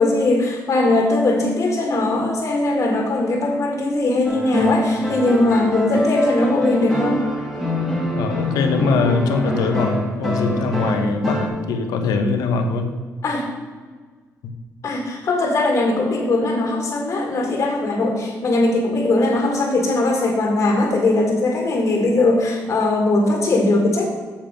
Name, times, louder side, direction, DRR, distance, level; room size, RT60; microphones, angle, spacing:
voice 1, 0.0-7.2 13.2-13.5 14.8-24.0, left 2 dB, 50° left, 1 dB, 1.9 m, -19 dB
sound 1, 4.2-11.5, left 1 dB, 5° right, 2.4 m, -25 dB
voice 2, 8.1-12.9, left 4 dB, 85° left, 6 dB, 1.1 m, -22 dB
7.4 x 7.3 x 5.1 m, 1.5 s
cardioid pair, 90°, 6 cm